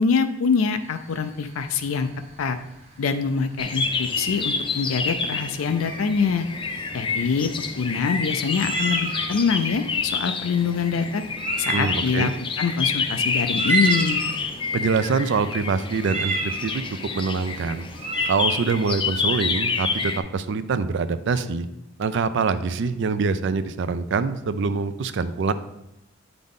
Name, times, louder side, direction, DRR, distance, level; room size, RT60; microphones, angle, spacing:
voice 1, 0.0-2.1 2.4-2.6 3.0-6.5 6.9-7.5 7.8-11.2 11.6-12.3 12.6-14.2, left 5 dB, 85° left, 8 dB, 0.4 m, -24 dB
sound 1, 0.8-18.3, right 2 dB, 35° right, 0.8 m, -31 dB
sound 2, 3.6-20.2, left 5 dB, 25° left, 0.4 m, -28 dB
voice 2, 11.7-12.3 14.7-16.8 17.1-17.9 18.3-21.7 22.0-25.5, right 4 dB, 60° right, 12 dB, 0.4 m, -24 dB
8.6 x 3.9 x 3.6 m, 0.87 s
head